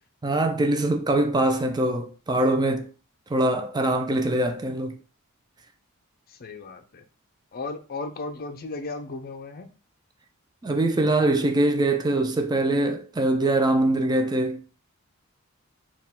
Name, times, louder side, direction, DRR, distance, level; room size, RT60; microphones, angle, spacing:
voice 1, 0.2-2.9 3.3-5.0 10.6-14.6, right 2 dB, 20° right, 0.4 m, -23 dB
voice 2, 6.3-7.0 7.5-9.7, left 3 dB, 45° left, 0.5 m, -35 dB
4.4 x 2.4 x 3.6 m
head